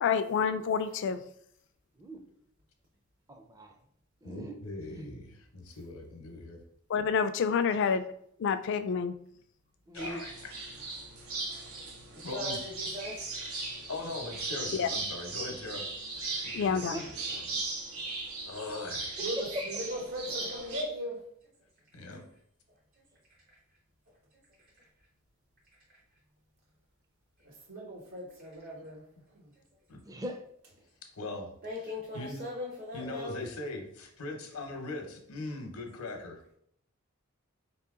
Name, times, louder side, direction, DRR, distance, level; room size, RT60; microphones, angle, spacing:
voice 1, 0.0-1.2 6.9-8.0 8.4-9.1 14.8-14.9 16.5-17.0, left 6 dB, 55° left, 12 dB, 0.3 m, -28 dB
voice 2, 3.3-3.7 4.2-4.6 4.8-5.1 9.9-10.2 16.8-17.1 19.4-19.5 30.1-30.5, equal, 15° right, 5 dB, 0.4 m, -40 dB
voice 3, 4.2-6.6 7.7-7.9 9.9-10.5 12.2-12.6 13.9-15.9 16.4-17.6 18.5-19.2 21.9-22.2 29.9-30.0 31.2-32.5 32.9-36.4, left 2 dB, 85° left, 4 dB, 0.8 m, -41 dB
sound 1, 10.0-20.8, right 3 dB, 90° right, 0.8 m, -38 dB
voice 4, 12.2-13.3 20.3-20.8 31.6-33.4, left 2 dB, 45° right, -3 dB, 0.7 m, -40 dB
voice 5, 19.2-21.2 27.4-29.0 29.3-29.5, equal, 75° right, -2 dB, 1.4 m, -38 dB
4.0 x 2.8 x 3.5 m, 0.69 s
head